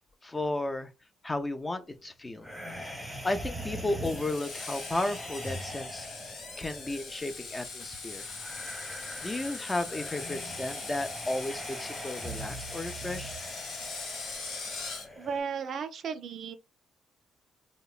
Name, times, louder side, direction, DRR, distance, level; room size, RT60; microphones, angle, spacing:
voice 1, 0.2-0.9 1.2-2.5 3.2-6.1 6.6-8.3 9.2-13.3, left 2 dB, 20° left, 0.4 m, -33 dB
sound 1, 2.4-15.4, right 1 dB, 5° left, 0.9 m, -42 dB
Screech, 4.0-15.1, left 4 dB, 80° left, 1.0 m, -41 dB
voice 2, 15.2-16.6, right 6 dB, 65° right, 0.4 m, -34 dB
2.9 x 2.1 x 2.3 m
cardioid pair, 90°, 0 cm